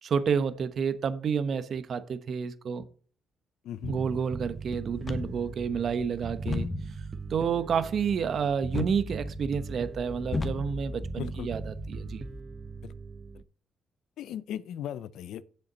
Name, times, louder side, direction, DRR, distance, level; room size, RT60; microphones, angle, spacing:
voice 1, 0.0-2.8 3.9-6.7 7.3-12.3, right 6 dB, 55° right, 0.9 m, -29 dB
voice 2, 3.6-4.0 11.2-11.5 12.8-12.9 14.2-15.4, left 10 dB, 80° left, 0.5 m, -37 dB
Bass guitar, 3.8-13.4, right 4 dB, 30° right, 0.6 m, -40 dB
sound 1, 5.0-12.4, left 3 dB, 30° left, 1.2 m, -37 dB
7.9 x 7.1 x 4.0 m
cardioid pair, 90°, 0 cm